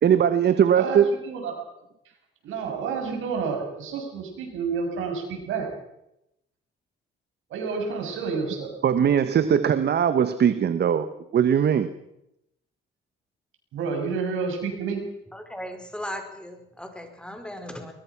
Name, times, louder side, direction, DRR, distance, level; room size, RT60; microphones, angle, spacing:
voice 1, 0.0-1.1 8.8-11.1 11.3-11.9, right 8 dB, 55° right, 12 dB, 1.3 m, -20 dB
voice 2, 0.7-1.5 2.4-5.7 7.5-8.7 13.7-15.0, right 5 dB, 85° right, 2 dB, 7.0 m, -29 dB
voice 3, 15.3-17.9, equal, 5° left, 5 dB, 4.7 m, -37 dB
22.5 x 21.0 x 6.1 m, 0.83 s
cardioid pair, 90°, 20 cm